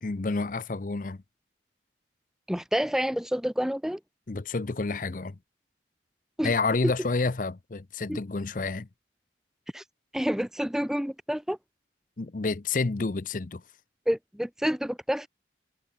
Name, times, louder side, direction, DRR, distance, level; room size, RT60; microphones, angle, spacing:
voice 1, 0.0-1.2 4.3-5.4 6.4-8.9 12.2-13.6, left 3 dB, 45° left, 0.6 m, -29 dB
voice 2, 2.5-4.0 6.4-6.5 8.1-8.2 9.7-9.8 10.1-11.6 14.1-15.3, equal, 5° right, 0.5 m, -28 dB
head